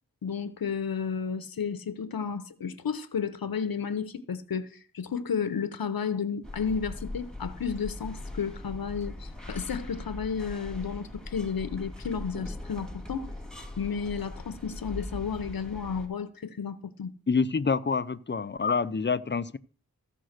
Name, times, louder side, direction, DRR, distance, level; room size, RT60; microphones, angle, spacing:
voice 1, 0.2-13.3 13.8-17.1, left 6 dB, 85° left, 0.7 m, -32 dB
sound 1, 6.4-16.1, left 1 dB, ahead, 2.0 m, -40 dB
voice 2, 17.3-19.6, left 5 dB, 35° left, 0.5 m, -27 dB
14.5 x 5.1 x 6.5 m
wide cardioid pair, 75°, 35 cm